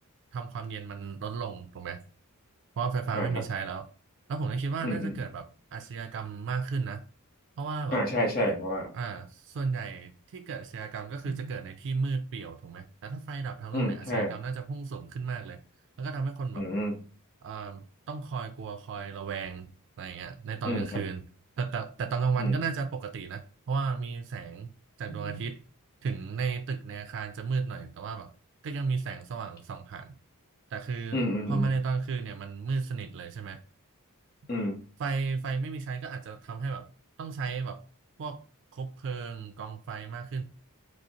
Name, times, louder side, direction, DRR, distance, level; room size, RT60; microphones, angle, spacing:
voice 1, 0.3-2.0 2.8-3.9 4.3-7.0 7.6-8.0 8.9-15.6 16.0-16.7 17.4-19.7 20.0-21.2 21.6-25.6 26.0-28.3 28.6-30.2 30.7-31.2 31.5-33.6 35.0-36.9 37.2-37.8 38.2-38.4 38.7-40.4, right 5 dB, 55° right, 0.4 m, -34 dB
voice 2, 4.8-5.2 7.9-8.9 11.2-11.5 13.7-14.3 16.6-17.0 20.6-21.0 22.4-22.5 25.1-25.4 31.1-31.7 34.5-34.8, equal, 45° left, 0.9 m, -30 dB
4.9 x 2.0 x 2.8 m
head